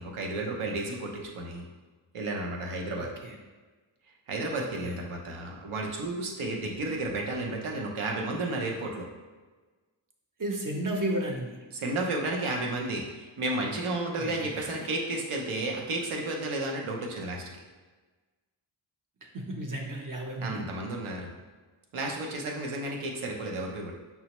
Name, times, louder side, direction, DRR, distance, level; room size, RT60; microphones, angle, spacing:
voice 1, 0.0-1.7 2.1-3.1 4.3-9.1 11.7-17.4 20.4-21.3 21.9-23.9, right 2 dB, 85° right, 0 dB, 0.8 m, -32 dB
voice 2, 4.6-5.0 10.4-11.6 14.2-14.9 19.3-20.6, right 1 dB, 40° right, 0 dB, 0.7 m, -33 dB
5.5 x 2.1 x 2.9 m, 1.3 s
cardioid pair, 70°, 48 cm